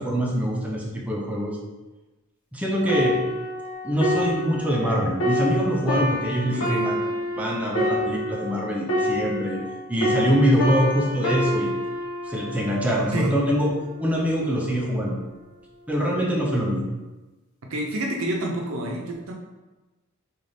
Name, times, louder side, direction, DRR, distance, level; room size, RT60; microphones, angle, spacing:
voice 1, 0.0-1.6 2.5-3.2 3.8-9.6 9.9-11.7 12.2-13.7 14.0-15.2 15.9-16.8, equal, 5° right, -3 dB, 0.5 m, -24 dB
sound 1, 2.9-9.7 10.0-13.6 14.2-14.4, left 1 dB, 80° left, 0.9 m, -27 dB
voice 2, 6.5-6.9 13.1-13.4 17.7-19.3, right 1 dB, 75° right, 1 dB, 0.6 m, -28 dB
3.4 x 2.4 x 3.8 m, 1.1 s
head